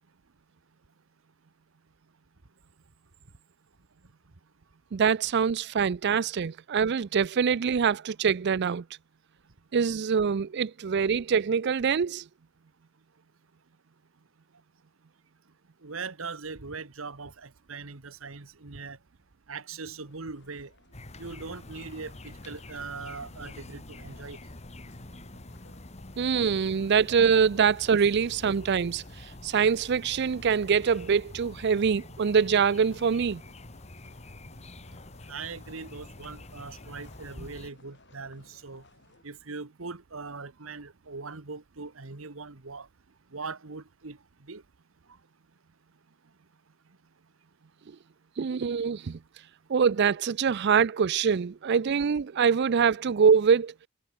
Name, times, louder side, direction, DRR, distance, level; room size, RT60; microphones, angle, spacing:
voice 1, 4.9-8.8 9.7-12.2 26.2-29.0 29.4-33.4 48.4-49.2 49.7-53.7, right 6 dB, 55° right, 0.4 m, -24 dB
voice 2, 15.8-19.0 19.5-20.7 21.2-24.4 35.3-38.8 39.2-42.9 43.3-44.6, right 4 dB, 80° right, 1.4 m, -40 dB
sound 1, 19.8-39.2, left 2 dB, 60° left, 4.8 m, -60 dB
sound 2, 20.9-37.7, left 2 dB, 35° left, 1.8 m, -46 dB
head